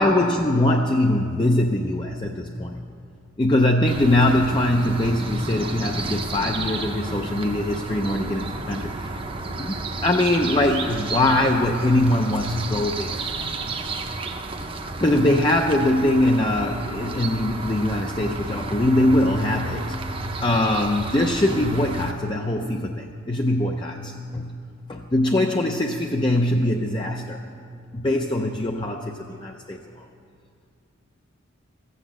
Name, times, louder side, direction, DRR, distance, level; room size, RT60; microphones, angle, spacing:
voice 1, 0.0-2.9 3.4-9.3 9.6-9.8 10.0-13.5 15.0-20.0 20.4-24.6 24.9-27.4 27.9-30.1, left 1 dB, 20° left, 2 dB, 0.5 m, -22 dB
sound 1, 3.9-22.1, right 3 dB, 25° right, 0.7 m, -32 dB
14.5 x 8.0 x 7.4 m, 2.4 s
head